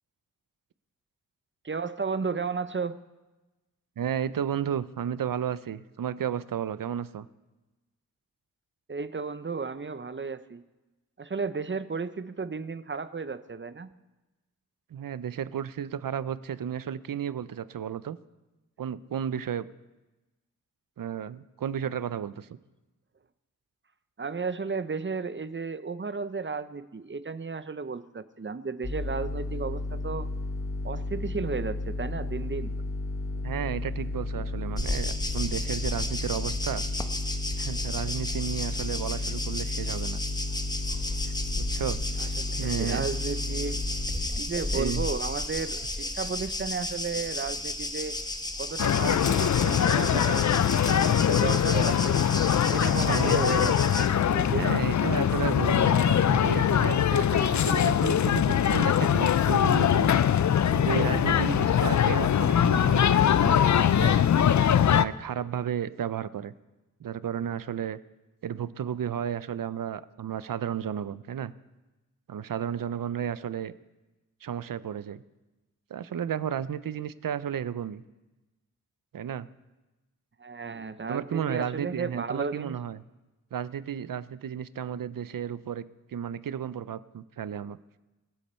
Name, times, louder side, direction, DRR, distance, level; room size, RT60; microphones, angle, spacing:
voice 1, 1.6-3.0 8.9-10.6 11.2-13.9 24.2-30.3 30.8-32.7 42.2-43.8 44.4-48.2 48.6-52.2 52.7-54.7 80.4-82.8, right 4 dB, 35° right, 13 dB, 0.7 m, -34 dB
voice 2, 4.0-7.3 14.9-18.2 18.8-19.7 21.0-22.6 33.4-36.8 37.6-40.2 41.2-42.2 42.6-43.1 44.7-45.1 51.0-51.2 53.1-53.5 54.5-60.2 60.7-63.6 63.9-64.3 64.9-66.5 67.0-68.0 68.4-71.5 72.3-73.7 74.4-75.2 75.9-78.0 79.1-79.5 81.1-83.0 83.5-85.8 86.1-88.0, right 9 dB, 80° right, 16 dB, 0.6 m, -33 dB
sound 1, 28.8-44.3, left 2 dB, 40° left, 1.8 m, -33 dB
sound 2, 34.8-54.1, left 1 dB, 10° left, 1.0 m, -33 dB
sound 3, 48.8-65.0, left 9 dB, 60° left, 0.5 m, -22 dB
24.5 x 8.5 x 4.4 m, 1.1 s
wide cardioid pair, 80°, 33 cm